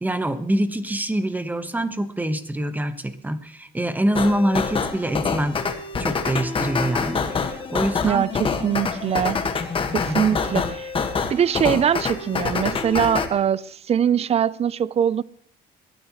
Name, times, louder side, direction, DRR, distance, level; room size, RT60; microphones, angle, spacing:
voice 1, 0.0-5.6 6.0-8.3 10.1-10.4, right 1 dB, 10° right, 11 dB, 1.2 m, -25 dB
sound 1, 4.2-13.3, left 5 dB, 30° left, 1.6 m, -26 dB
voice 2, 8.0-9.4 9.9-10.9 11.3-15.2, right 8 dB, 40° right, 20 dB, 0.5 m, -22 dB
21.5 x 13.0 x 3.1 m, 0.66 s
cardioid pair, 110°, 17 cm